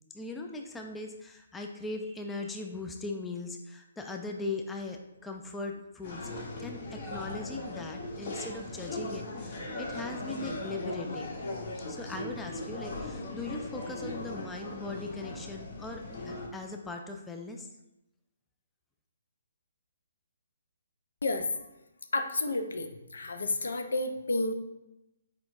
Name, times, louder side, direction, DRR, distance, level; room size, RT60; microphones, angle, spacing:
voice 1, 0.1-6.3 6.6-11.4 11.9-17.7, left 3 dB, 10° left, 2 dB, 0.3 m, -39 dB
sound 1, 6.0-16.5, left 2 dB, 45° left, 0.9 m, -39 dB
voice 2, 22.1-24.5, left 2 dB, 65° left, 6 dB, 0.5 m, -31 dB
4.7 x 4.2 x 2.6 m, 0.93 s
figure-of-eight pair, 130°, 0 cm